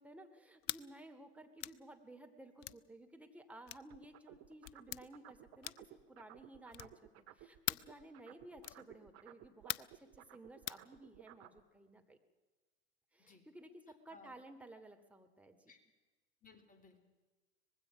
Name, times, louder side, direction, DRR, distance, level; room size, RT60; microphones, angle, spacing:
voice 1, 0.0-12.2 13.1-15.7, right 1 dB, 5° right, 5 dB, 2.8 m, -56 dB
sound 1, 0.6-0.9 1.6-1.8 2.6-2.8 3.7-3.9 4.6-5.0 5.6-6.0 6.7-7.0 7.7-7.9 8.6-8.9 9.7-10.0 10.7-10.8, left 16 dB, 50° left, 0.7 m, -42 dB
sound 2, 3.9-7.6 7.8-11.6, right 13 dB, 50° right, 1.8 m, -57 dB
voice 2, 16.4-17.1, left 4 dB, 25° left, 7 dB, 3.7 m, -60 dB
24.0 x 20.5 x 6.0 m, 1.2 s
hypercardioid pair, 90°, 33 cm